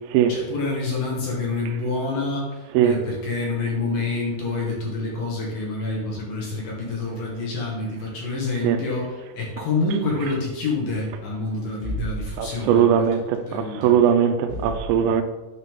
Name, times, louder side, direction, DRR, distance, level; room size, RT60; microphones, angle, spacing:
voice 1, 0.3-14.0 14.5-14.7, left 3 dB, 60° left, 2.8 m, -27 dB
voice 2, 12.4-15.2, right 9 dB, 85° right, 2.9 m, -19 dB
8.9 x 5.5 x 3.6 m
omnidirectional pair, 5.2 m